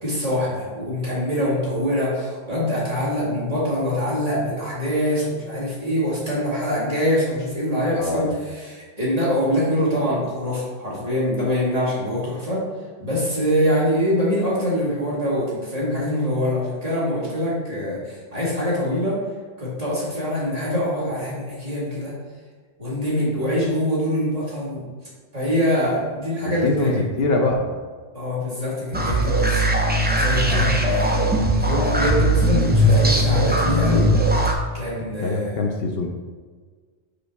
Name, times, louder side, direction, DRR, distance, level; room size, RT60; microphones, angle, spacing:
voice 1, 0.0-8.3 8.6-12.6 13.0-19.2 19.6-22.1 22.8-24.8 25.3-27.2 28.1-29.6 30.0-31.1 31.6-34.1 34.7-35.6, equal, 35° right, -7 dB, 2.0 m, -24 dB
voice 2, 8.0-8.3 26.4-27.7 30.5-30.7 34.9-36.1, left 2 dB, 70° left, 2 dB, 0.9 m, -24 dB
sound 1, 28.9-34.5, right 1 dB, 15° right, 0.3 m, -19 dB
5.2 x 4.7 x 4.0 m, 1.5 s
omnidirectional pair, 1.1 m